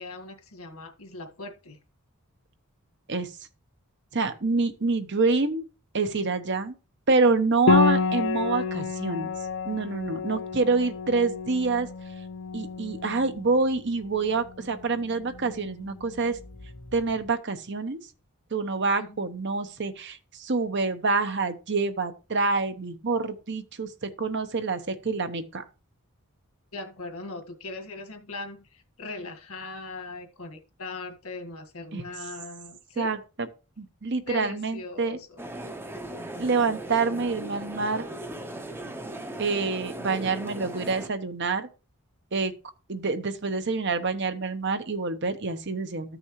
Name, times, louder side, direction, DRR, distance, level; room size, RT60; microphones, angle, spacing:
voice 1, 0.0-1.8 19.0-19.2 26.7-33.2 34.3-35.4, left 3 dB, 80° left, 1.8 m, -39 dB
voice 2, 4.1-5.6 5.9-6.7 7.1-9.3 9.6-11.9 12.5-16.4 16.9-18.0 18.5-25.6 31.9-32.0 33.0-33.5 33.8-35.2 36.4-38.0 39.4-41.7 42.3-42.5 42.9-46.2, right 3 dB, 55° right, 1.0 m, -27 dB
Piano, 7.7-17.0, left 4 dB, 60° left, 0.6 m, -30 dB
sound 1, 35.4-41.1, right 1 dB, 10° right, 0.7 m, -38 dB
14.0 x 6.2 x 3.2 m
head